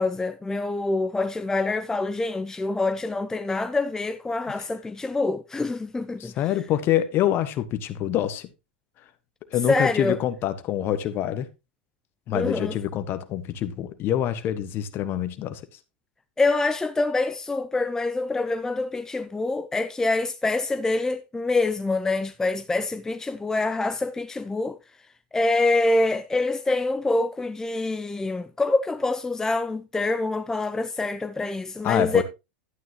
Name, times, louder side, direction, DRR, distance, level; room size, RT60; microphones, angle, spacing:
voice 1, 0.0-6.3 9.7-10.2 12.3-12.8 16.4-24.8 25.3-32.2, left 2 dB, 10° left, 0.5 m, -25 dB
voice 2, 6.2-8.5 9.5-11.5 12.3-15.7 31.8-32.2, left 11 dB, 40° left, 1.3 m, -26 dB
11.5 x 9.3 x 3.0 m
hypercardioid pair, 95°, 6 cm